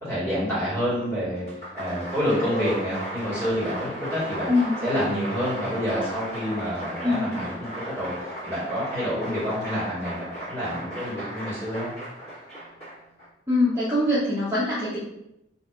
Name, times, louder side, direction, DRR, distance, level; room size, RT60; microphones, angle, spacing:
voice 1, 0.0-1.4 1.7-4.5 4.8-11.9, equal, 15° left, -11 dB, 1.4 m, -28 dB
Applause, 1.4-13.3, right 1 dB, 35° left, 1.1 m, -35 dB
voice 2, 4.5-4.8 7.0-7.3 13.5-15.0, left 2 dB, 15° right, -9 dB, 0.5 m, -23 dB
2.7 x 2.5 x 2.2 m, 0.83 s
head